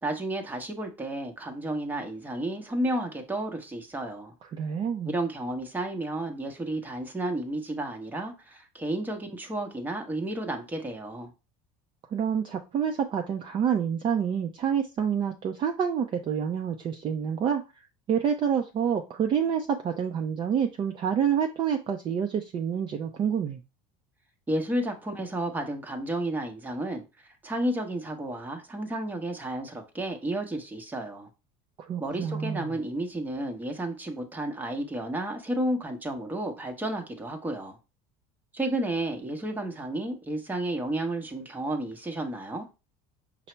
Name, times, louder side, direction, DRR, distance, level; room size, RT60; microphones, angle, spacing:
voice 1, 0.0-4.3 5.0-11.3 24.5-31.3 32.0-37.8 38.5-42.7, right 1 dB, 10° right, 0.8 m, -32 dB
voice 2, 4.5-5.1 12.1-17.6 18.1-23.6 31.8-32.7, right 8 dB, 30° right, 0.4 m, -28 dB
5.4 x 2.0 x 4.3 m
cardioid pair, 135°, 16 cm